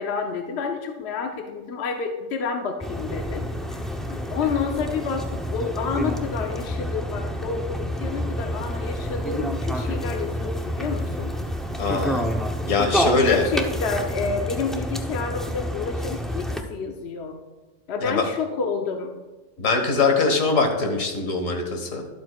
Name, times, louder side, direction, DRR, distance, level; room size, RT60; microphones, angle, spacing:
voice 1, 0.0-3.4 3.7-11.3 13.0-17.4 17.9-19.1, left 5 dB, 60° left, 3 dB, 1.0 m, -29 dB
sound 1, 2.8-16.6, equal, ahead, 0.3 m, -28 dB
voice 2, 11.8-12.3 12.7-13.5 18.0-18.2 19.6-22.1, left 4 dB, 80° left, 4 dB, 1.8 m, -22 dB
12.0 x 11.0 x 2.3 m, 1.2 s
omnidirectional pair, 1.4 m